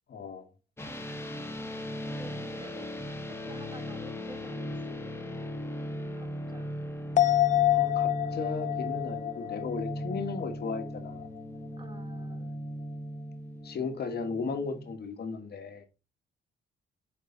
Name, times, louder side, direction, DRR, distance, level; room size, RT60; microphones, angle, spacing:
voice 1, 0.1-0.5 7.7-11.3 13.6-15.9, left 4 dB, 55° left, 1.4 m, -36 dB
sound 1, 0.8-14.9, equal, 10° left, 1.1 m, -38 dB
voice 2, 2.1-2.9 3.3-5.8 6.2-6.8 10.2-10.3 11.8-12.5, right 2 dB, 25° right, 1.2 m, -50 dB
sound 2, 7.2-10.9 11.2-11.3, left 14 dB, 40° left, 0.4 m, -27 dB
7.2 x 4.6 x 3.8 m
cardioid pair, 90°, 20 cm